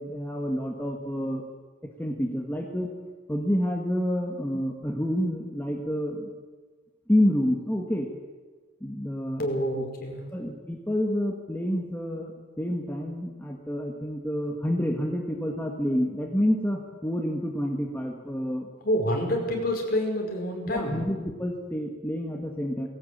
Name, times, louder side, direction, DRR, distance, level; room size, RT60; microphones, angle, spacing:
voice 1, 0.0-1.4 2.0-2.9 3.3-6.3 7.1-8.1 8.8-9.5 9.8-9.9 10.3-18.7 20.7-22.9, equal, 10° left, 0 dB, 1.7 m, -28 dB
voice 2, 9.4-10.2 18.8-21.1, equal, 50° left, 1 dB, 5.1 m, -27 dB
20.0 x 17.0 x 8.8 m, 1.4 s
head